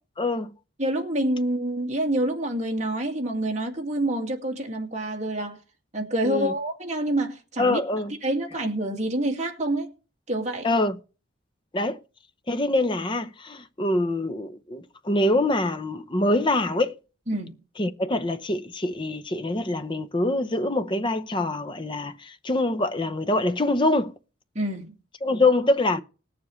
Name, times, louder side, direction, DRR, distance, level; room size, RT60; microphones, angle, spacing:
voice 1, 0.2-0.5 6.2-6.5 7.6-8.1 10.6-11.0 11.7-12.0 12.5-16.9 17.8-24.2 25.2-26.0, left 2 dB, 25° left, 0.7 m, -24 dB
voice 2, 0.8-5.6 5.9-7.8 8.2-9.9 10.3-10.7 17.3-17.5 24.5-24.9, right 1 dB, 35° right, 2.1 m, -27 dB
20.0 x 7.2 x 3.2 m
head